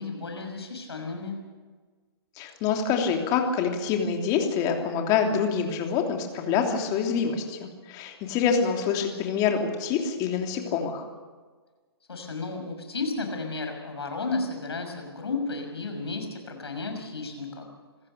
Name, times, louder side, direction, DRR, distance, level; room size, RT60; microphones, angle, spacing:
voice 1, 0.0-1.4 12.1-17.7, left 3 dB, 75° left, 4 dB, 6.2 m, -33 dB
voice 2, 2.4-11.0, left 6 dB, 30° left, 3 dB, 3.1 m, -26 dB
27.5 x 15.5 x 6.9 m, 1.4 s
figure-of-eight pair, 130°, 14 cm